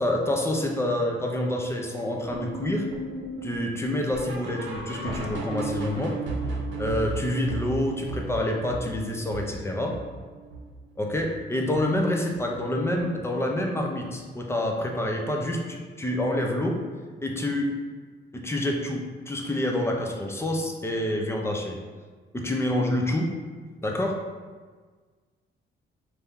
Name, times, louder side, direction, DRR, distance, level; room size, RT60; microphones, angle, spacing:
voice 1, 0.0-2.9 3.4-6.1 6.8-10.0 11.0-16.8 17.2-17.7 18.3-21.8 22.3-23.3 23.8-24.2, left 1 dB, 15° left, 1 dB, 0.6 m, -27 dB
sound 1, 2.3-11.4 11.7-12.0 12.3-12.4 12.9-13.0 13.5-13.6, right 2 dB, 70° right, 0.8 m, -35 dB
4.5 x 2.7 x 3.6 m, 1.5 s
cardioid pair, 110°, 20 cm